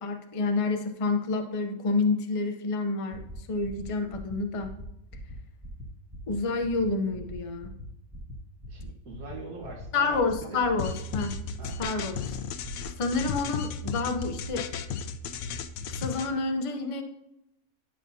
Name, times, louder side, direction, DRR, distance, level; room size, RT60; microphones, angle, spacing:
voice 1, 0.0-3.2 3.5-4.7 6.3-7.7 9.9-11.3 11.8-12.2 13.0-14.6 15.9-17.0, left 3 dB, 30° left, 5 dB, 0.6 m, -28 dB
sound 1, 3.1-3.4 3.6-3.8 4.1-4.3 4.6-4.8 5.1-5.3 5.6-5.8 6.1-6.3 6.6-6.8 7.1-7.3 7.6-7.8 8.1-8.3 8.6-8.8 9.1-9.3 9.6-9.8 10.1-10.3 10.6-10.8 11.1-11.3 11.6-11.8 12.1-12.4 12.6-12.9 13.1-13.4, left 1 dB, 15° right, 1.4 m, -42 dB
voice 2, 8.7-10.6 11.6-11.8, right 2 dB, 85° right, -3 dB, 1.7 m, -43 dB
sound 2, 10.8-16.3, left 6 dB, 85° left, 1.1 m, -34 dB
10.5 x 6.6 x 2.7 m, 0.84 s
omnidirectional pair, 1.5 m